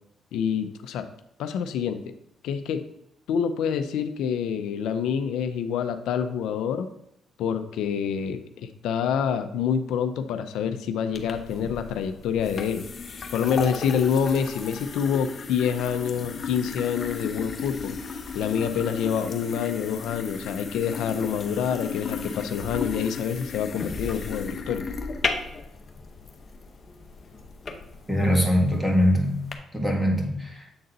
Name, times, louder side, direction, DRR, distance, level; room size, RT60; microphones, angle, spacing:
voice 1, 0.3-1.0 1.4-2.0 2.4-2.8 3.3-6.9 7.4-12.8 13.3-24.8, left 7 dB, 85° left, 9 dB, 0.5 m, -27 dB
sound 1, 11.1-29.5, left 4 dB, 45° left, 0.8 m, -35 dB
voice 2, 28.1-29.4 29.7-30.6, equal, 5° right, 0 dB, 1.7 m, -22 dB
7.7 x 3.9 x 3.9 m, 0.75 s
cardioid pair, 90°, 0 cm